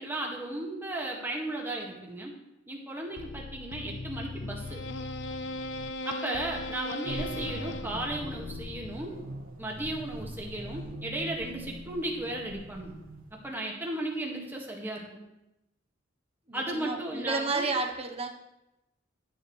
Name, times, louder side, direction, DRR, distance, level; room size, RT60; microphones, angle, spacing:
voice 1, 0.0-2.3 2.7-4.8 6.1-9.1 9.6-13.0 13.4-15.2 16.5-17.7, right 1 dB, 10° right, -1 dB, 1.9 m, -35 dB
sound 1, 3.2-9.4, left 2 dB, 60° left, 0.5 m, -38 dB
sound 2, 7.0-13.5, right 1 dB, 90° right, 1.6 m, -42 dB
voice 2, 16.5-18.3, right 3 dB, 30° right, 3 dB, 1.0 m, -31 dB
12.5 x 10.0 x 3.3 m, 0.91 s
head